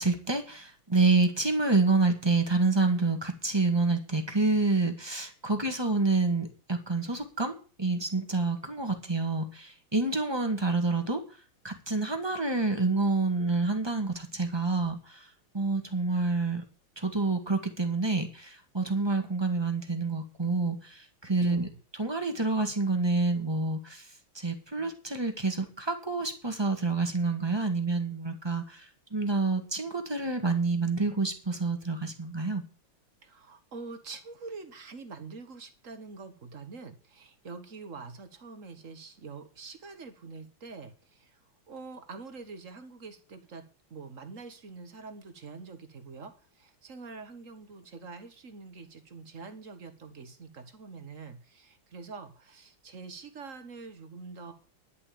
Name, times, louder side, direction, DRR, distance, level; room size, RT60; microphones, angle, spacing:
voice 1, 0.0-11.2 11.6-15.3 15.5-16.6 17.0-21.7 22.0-24.1 24.3-32.6, right 3 dB, 10° right, 6 dB, 1.7 m, -28 dB
voice 2, 21.4-21.8 33.2-41.4 41.7-43.6 43.9-54.5, right 4 dB, 40° right, 9 dB, 1.7 m, -45 dB
11.0 x 7.1 x 8.8 m, 0.37 s
omnidirectional pair, 2.4 m